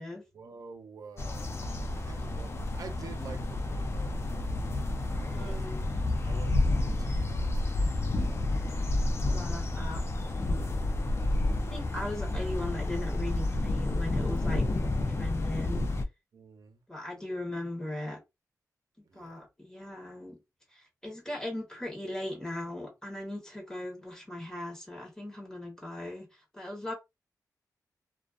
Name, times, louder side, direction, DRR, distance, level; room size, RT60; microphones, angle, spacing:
voice 1, 0.3-4.6 4.9-5.7 6.2-8.6 16.3-16.8 19.0-19.5, right 5 dB, 65° right, 0.6 m, -49 dB
sound 1, 1.2-16.0, left 2 dB, 40° left, 0.5 m, -30 dB
voice 2, 5.2-5.8 9.2-10.0 11.7-15.9 16.9-18.2 19.1-20.4 20.7-26.9, left 1 dB, 10° left, 1.2 m, -38 dB
2.4 x 2.4 x 2.4 m
cardioid pair, 85°, 7 cm